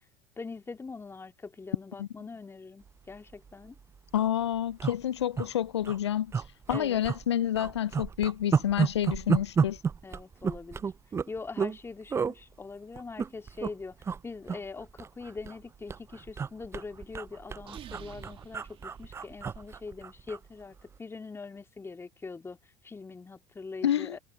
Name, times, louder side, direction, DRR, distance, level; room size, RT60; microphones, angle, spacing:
voice 1, 0.4-3.7 6.7-7.0 10.0-10.9 11.3-14.0 14.2-22.6 22.8-24.2, left 4 dB, 15° left, 2.3 m, -42 dB
sound 1, 3.3-3.5 3.8-3.9 4.1-4.3 4.8-5.5 5.8-6.0 6.3-7.2 7.6-11.8 12.1-12.3 13.0-13.7 14.0-14.2 14.5-15.6 15.9-20.4 20.8-21.0, right 6 dB, 20° right, 0.4 m, -31 dB
voice 2, 4.1-9.8 23.8-24.2, left 11 dB, 80° left, 0.5 m, -29 dB
sound 2, 17.6-19.7, right 10 dB, 40° right, 3.0 m, -50 dB
hypercardioid pair, 75°, 14 cm